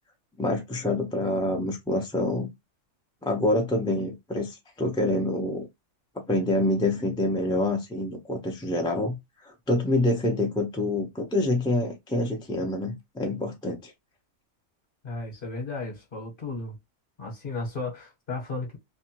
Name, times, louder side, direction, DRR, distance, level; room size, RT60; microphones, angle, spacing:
voice 1, 0.4-2.5 3.2-5.7 6.2-9.2 9.4-13.9, left 1 dB, 5° left, 0.3 m, -26 dB
voice 2, 15.0-16.7 17.2-18.8, left 3 dB, 45° left, 1.2 m, -34 dB
2.6 x 2.2 x 2.8 m
omnidirectional pair, 1.3 m